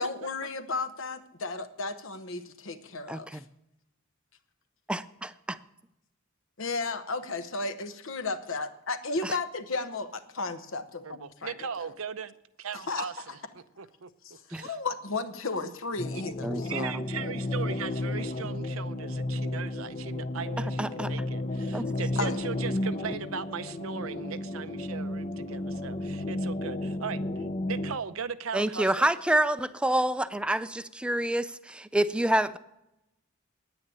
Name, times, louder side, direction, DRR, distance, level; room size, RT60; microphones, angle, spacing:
voice 1, 0.0-3.4 6.6-11.5 11.8-11.9 12.9-13.3 14.2-16.9 22.2-22.4, left 3 dB, 70° left, 10 dB, 1.0 m, -34 dB
voice 2, 3.1-3.4 4.9-5.6 9.2-9.4 16.4-17.0 20.8-21.1 21.7-21.9 28.5-32.6, right 1 dB, 5° right, 13 dB, 0.4 m, -28 dB
voice 3, 11.0-14.1 14.5-14.7 15.6-15.7 16.1-16.3 16.6-27.2 27.7-29.1, right 6 dB, 90° right, 12 dB, 0.7 m, -38 dB
sound 1, 16.0-28.0, left 1 dB, 35° left, 0.6 m, -33 dB
9.6 x 9.5 x 8.8 m, 0.87 s
head